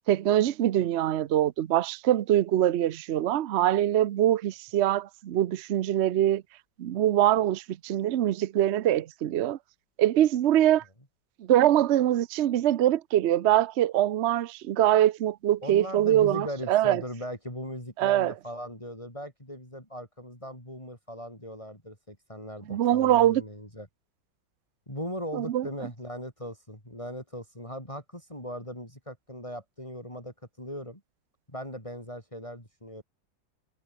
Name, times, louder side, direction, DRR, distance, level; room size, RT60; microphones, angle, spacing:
voice 1, 0.1-6.4 6.8-9.6 10.0-10.8 11.4-17.0 18.0-18.3 22.7-23.4 25.3-25.7, right 12 dB, 75° right, 0.6 m, -23 dB
voice 2, 15.6-23.9 24.9-31.0 31.5-33.0, equal, 15° left, 7.2 m, -39 dB
omnidirectional pair, 2.0 m